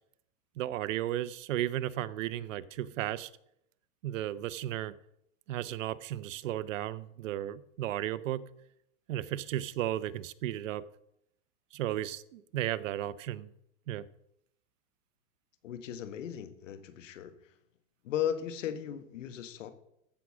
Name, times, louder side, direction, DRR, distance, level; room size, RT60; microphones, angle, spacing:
voice 1, 0.6-3.3 4.0-4.9 5.5-8.4 9.1-10.8 11.7-13.5 13.9-14.0, right 13 dB, 85° right, 17 dB, 0.7 m, -34 dB
voice 2, 15.6-17.3 18.0-19.7, left 10 dB, 85° left, 10 dB, 1.5 m, -36 dB
14.5 x 6.2 x 5.0 m, 0.76 s
supercardioid pair, 140°, 37 cm